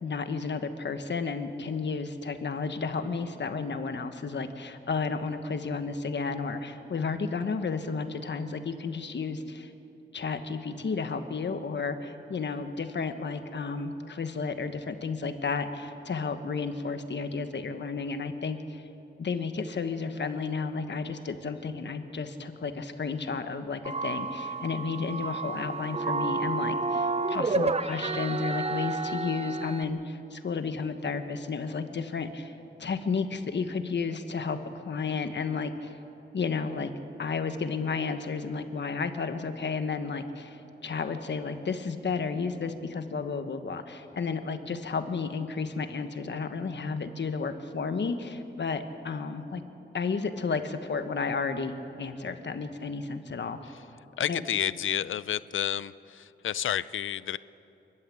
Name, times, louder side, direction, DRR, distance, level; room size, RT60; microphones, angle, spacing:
voice 1, 0.0-9.7 10.1-18.9 19.2-32.5 32.8-36.0 36.3-36.9 37.2-49.6 49.9-53.6 54.3-54.4, left 4 dB, 65° left, 8 dB, 1.3 m, -32 dB
sound 1, 23.8-29.8, right 3 dB, 30° right, 0.7 m, -30 dB
voice 2, 54.2-57.4, left 10 dB, 85° left, 17 dB, 0.4 m, -30 dB
28.5 x 12.0 x 8.4 m, 2.9 s
wide cardioid pair, 125°, 20 cm